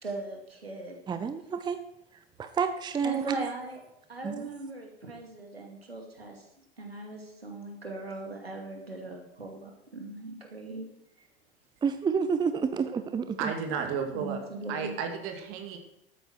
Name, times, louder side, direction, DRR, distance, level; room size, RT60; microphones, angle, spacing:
voice 1, 0.0-1.0 3.0-3.8 4.1-6.4 6.8-10.9 14.1-14.9, right 2 dB, 85° right, 2 dB, 2.4 m, -39 dB
voice 2, 1.1-1.8 2.4-3.5 4.2-4.6 11.8-13.5, right 6 dB, 15° right, 10 dB, 0.7 m, -29 dB
voice 3, 13.4-14.4 14.7-15.8, right 6 dB, 45° right, 5 dB, 2.3 m, -33 dB
13.5 x 8.9 x 4.6 m, 0.82 s
figure-of-eight pair, 80°, 30 cm